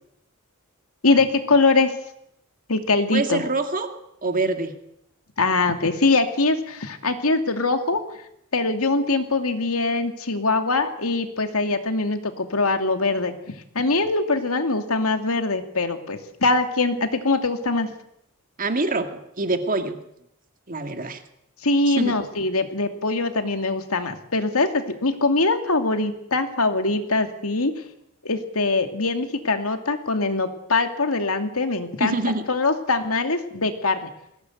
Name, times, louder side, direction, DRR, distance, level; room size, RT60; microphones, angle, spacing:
voice 1, 1.0-1.9 2.7-3.4 5.4-8.0 8.5-13.3 13.7-17.9 21.6-27.7 28.2-32.2 32.5-34.1, left 3 dB, 75° left, 7 dB, 2.6 m, -22 dB
voice 2, 3.1-3.9 4.2-4.7 18.6-20.0 20.7-21.2 21.9-22.1 32.0-32.4, right 3 dB, 40° right, 7 dB, 2.2 m, -25 dB
21.0 x 17.0 x 9.4 m, 0.77 s
head